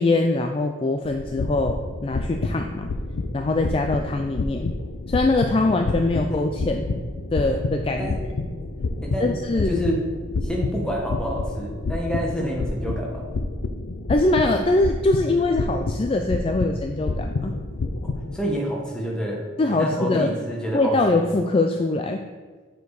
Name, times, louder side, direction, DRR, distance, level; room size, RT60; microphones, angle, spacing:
voice 1, 0.0-2.9 3.3-4.7 5.1-6.9 7.3-8.1 9.2-9.8 14.1-17.5 19.6-20.3 20.7-22.2, left 2 dB, 30° left, 4 dB, 0.3 m, -22 dB
sound 1, 1.0-18.4, left 2 dB, 90° left, 0.5 m, -29 dB
voice 2, 9.0-9.3 9.7-10.0 10.4-13.3 18.0-21.2, equal, 5° left, -3 dB, 1.2 m, -28 dB
8.0 x 4.5 x 4.8 m, 1.4 s
head